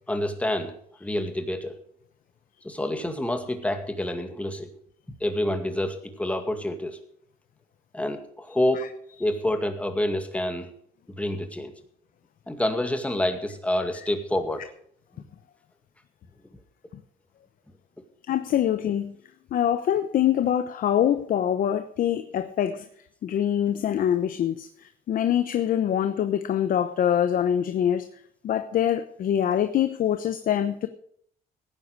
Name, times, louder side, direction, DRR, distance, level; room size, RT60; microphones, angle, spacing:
voice 1, 0.1-0.7 1.0-1.7 2.6-4.7 5.2-7.0 7.9-8.8 9.2-10.7 11.1-11.7 12.5-14.6, left 1 dB, 10° left, 6 dB, 2.1 m, -27 dB
voice 2, 18.3-19.1 19.5-22.9 23.2-28.1 28.4-30.9, left 10 dB, 55° left, 10 dB, 0.9 m, -24 dB
17.0 x 9.7 x 4.8 m, 0.63 s
cardioid pair, 110°, 17 cm